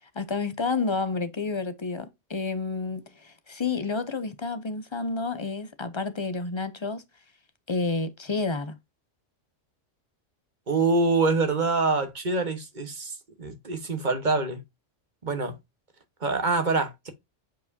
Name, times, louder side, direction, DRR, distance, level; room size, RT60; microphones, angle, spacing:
voice 1, 0.2-7.0 7.7-8.8, left 4 dB, 35° left, 0.5 m, -30 dB
voice 2, 10.7-14.6 15.2-15.6 16.2-17.1, right 3 dB, 40° right, 1.3 m, -25 dB
7.6 x 4.7 x 2.7 m
omnidirectional pair, 1.3 m